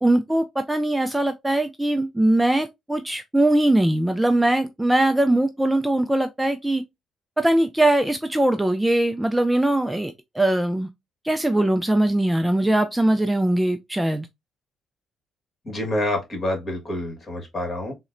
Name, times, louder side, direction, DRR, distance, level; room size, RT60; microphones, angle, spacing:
voice 1, 0.0-6.8 7.4-10.9 11.2-14.3, right 1 dB, 10° right, 0.3 m, -21 dB
voice 2, 15.6-17.9, left 1 dB, 35° left, 1.5 m, -27 dB
3.9 x 2.1 x 2.5 m
cardioid pair, 90°, 0 cm